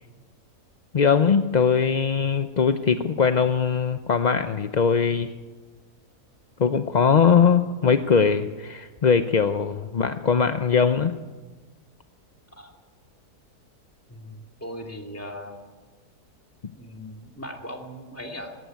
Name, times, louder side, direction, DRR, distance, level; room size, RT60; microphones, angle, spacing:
voice 1, 0.9-5.3 6.6-11.1, left 6 dB, 45° left, 9 dB, 0.5 m, -21 dB
voice 2, 14.1-15.6 16.8-18.6, equal, 10° left, 2 dB, 2.6 m, -38 dB
19.0 x 17.0 x 9.4 m, 1.3 s
omnidirectional pair, 1.7 m